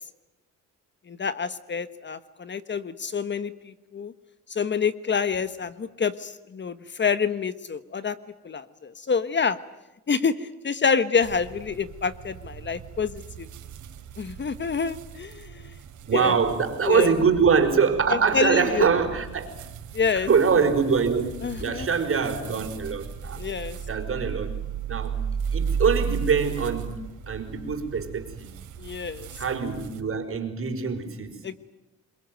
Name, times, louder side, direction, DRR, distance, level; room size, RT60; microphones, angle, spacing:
voice 1, 1.1-4.1 4.5-8.2 8.4-9.6 10.1-13.5 14.2-15.7 16.1-16.4 16.9-17.1 18.1-18.9 19.9-20.3 21.4-21.9 23.4-23.8 28.8-29.3 31.4-31.6, left 6 dB, 35° left, 1.3 m, -27 dB
sound 1, 11.2-30.0, right 7 dB, 75° right, 4.0 m, -36 dB
voice 2, 16.1-19.5 20.1-23.4 23.9-24.6 24.9-25.2 25.5-28.6 29.4-31.4, right 6 dB, 45° right, 5.0 m, -24 dB
28.0 x 22.0 x 9.2 m
cardioid pair, 90°, 30 cm